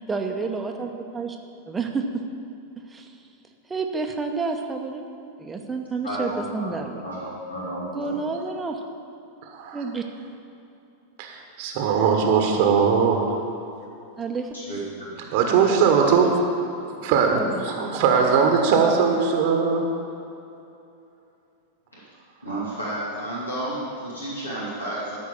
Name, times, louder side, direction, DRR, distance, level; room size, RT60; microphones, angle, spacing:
voice 1, 0.1-1.4 1.7-1.9 2.9-3.1 3.7-5.1 5.4-7.0 7.9-8.8 9.7-10.0 14.2-14.5 17.3-17.9, right 4 dB, 15° right, 3 dB, 0.8 m, -29 dB
voice 2, 6.0-8.2 14.5-15.1 21.9-22.0 22.4-25.2, right 1 dB, 80° left, -7 dB, 2.3 m, -32 dB
voice 3, 11.2-13.2 15.3-16.3 17.0-19.9, right 6 dB, 45° right, 2 dB, 1.1 m, -20 dB
13.0 x 4.6 x 6.8 m, 2.7 s
figure-of-eight pair, 90°, 0 cm